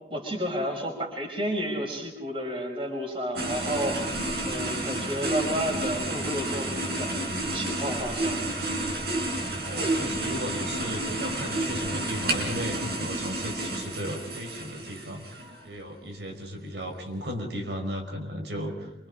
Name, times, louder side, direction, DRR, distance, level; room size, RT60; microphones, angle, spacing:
voice 1, 0.1-8.4, equal, 30° right, 2 dB, 5.8 m, -32 dB
sound 1, 3.4-15.7, right 1 dB, 60° right, 5.7 m, -30 dB
voice 2, 9.7-19.1, equal, 85° right, 3 dB, 5.1 m, -35 dB
28.0 x 26.5 x 5.0 m, 0.87 s
head